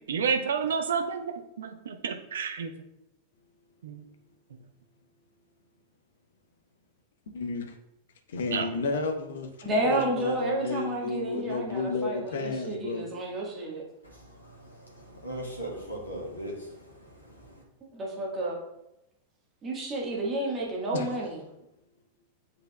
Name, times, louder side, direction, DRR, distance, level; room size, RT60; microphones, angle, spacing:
voice 1, 0.1-2.7 3.8-4.0 8.5-8.8, right 6 dB, 65° right, 0.6 m, -30 dB
voice 2, 7.3-7.7 8.3-9.5 9.8-13.0 20.9-21.1, left 3 dB, 60° left, 0.8 m, -32 dB
voice 3, 9.6-13.8 17.9-18.6 19.6-21.4, right 1 dB, 25° right, 1.6 m, -31 dB
voice 4, 14.0-17.6, right 1 dB, 80° left, 1.7 m, -40 dB
8.8 x 4.8 x 2.3 m
figure-of-eight pair, 90°, 0 cm